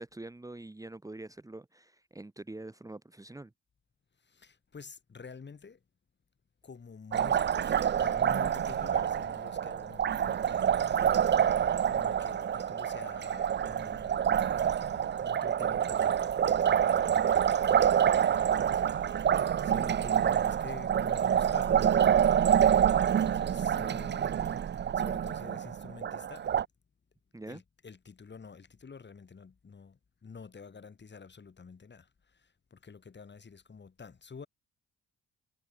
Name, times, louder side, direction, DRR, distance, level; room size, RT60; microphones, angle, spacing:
voice 1, 0.0-3.5 27.3-27.6, right 2 dB, 10° right, 1.6 m, -45 dB
voice 2, 4.2-5.8 6.6-11.3 11.9-24.6 24.9-26.4 27.5-34.5, left 5 dB, 35° left, 7.4 m, -49 dB
Liquid, 7.1-26.6, right 9 dB, 35° right, 0.6 m, -27 dB
cardioid pair, 90°, 30 cm